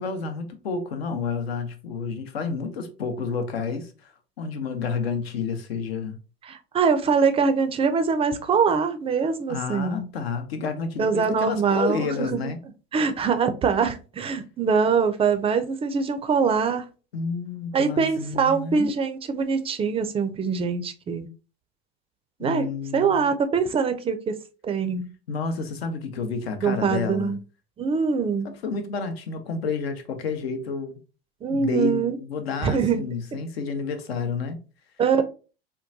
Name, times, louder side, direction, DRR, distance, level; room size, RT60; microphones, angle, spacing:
voice 1, 0.0-4.1 4.4-6.2 9.5-12.6 17.1-18.9 22.4-23.3 25.3-27.3 28.6-31.0 31.5-34.6, left 5 dB, 80° left, 0.7 m, -30 dB
voice 2, 6.5-10.0 11.0-12.5 12.9-16.8 17.7-21.3 22.4-22.7 22.9-24.4 24.6-25.1 26.6-27.4 27.8-28.5 31.4-32.1 32.6-33.0 35.0-35.2, right 5 dB, 20° right, 0.4 m, -23 dB
3.7 x 2.2 x 2.6 m
hypercardioid pair, 80°, 30 cm